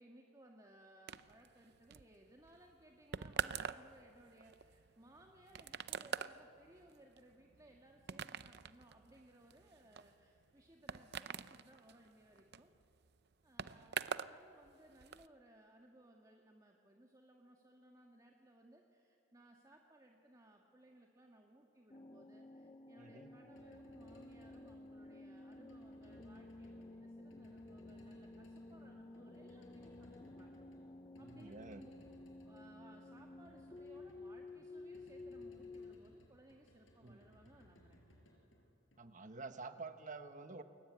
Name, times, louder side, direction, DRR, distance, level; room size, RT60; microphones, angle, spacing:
voice 1, 0.0-12.7 13.4-30.6 31.2-31.9 32.3-38.2, right 1 dB, 20° right, 1 dB, 1.7 m, -63 dB
sound 1, 1.1-14.4 14.6-15.3, right 7 dB, 55° right, 0.6 m, -45 dB
sound 2, 21.9-35.9, left 2 dB, 25° left, 0.6 m, -53 dB
voice 2, 23.0-23.3 31.2-31.8 37.0-37.2 39.0-40.6, right 3 dB, 40° right, 8 dB, 1.4 m, -49 dB
sound 3, 23.6-39.5, equal, 90° left, 5.8 m, -65 dB
28.0 x 22.5 x 9.5 m, 2.7 s
head